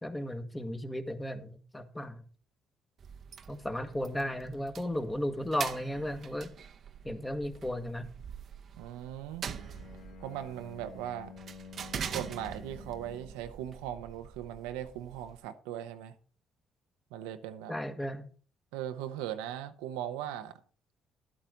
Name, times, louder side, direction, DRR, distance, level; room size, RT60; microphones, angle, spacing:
voice 1, 0.0-2.2 3.5-6.5 7.0-8.1 17.7-18.3, left 1 dB, 15° left, 1.5 m, -35 dB
sound 1, 3.0-15.4, right 7 dB, 55° right, 0.8 m, -44 dB
voice 2, 8.8-9.5 10.2-11.3 12.1-16.1 17.1-17.7 18.7-20.6, right 11 dB, 90° right, 0.8 m, -39 dB
Bowed string instrument, 9.4-13.5, left 6 dB, 90° left, 2.0 m, -50 dB
11.0 x 8.7 x 3.9 m
supercardioid pair, 65°, 0 cm